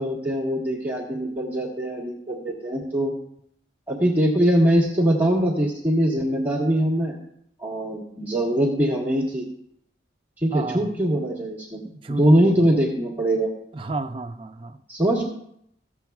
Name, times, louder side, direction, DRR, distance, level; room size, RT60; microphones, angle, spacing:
voice 1, 0.0-3.1 3.9-7.1 7.6-9.4 10.4-11.8 12.1-13.5 14.9-15.2, right 1 dB, 10° right, -4 dB, 1.4 m, -22 dB
voice 2, 10.5-10.9 11.8-12.8 13.7-14.8, right 3 dB, 30° right, 6 dB, 0.5 m, -32 dB
15.0 x 7.4 x 2.3 m, 0.72 s
head